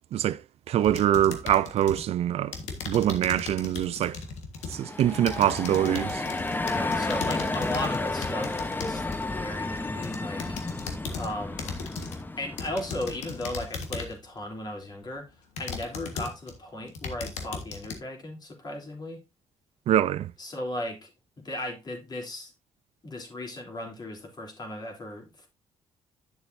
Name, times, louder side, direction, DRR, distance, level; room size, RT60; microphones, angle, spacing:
voice 1, 0.7-2.5 2.9-4.2 4.7-6.2 19.9-20.3, right 11 dB, 65° right, 0.4 m, -24 dB
sound 1, 0.8-2.1 2.5-9.2 9.8-11.3 11.6-12.2 12.6-14.2 14.8-14.9 15.6-16.5 16.9-18.0, left 5 dB, 85° left, 1.6 m, -37 dB
sound 2, 4.6-13.4, left 2 dB, 15° left, 1.0 m, -32 dB
voice 2, 6.6-10.5 11.1-11.8 12.4-19.2 20.4-21.1 21.4-22.5 23.0-25.5, left 1 dB, 40° left, 3.4 m, -36 dB
9.9 x 6.9 x 2.7 m
cardioid pair, 80°, 11 cm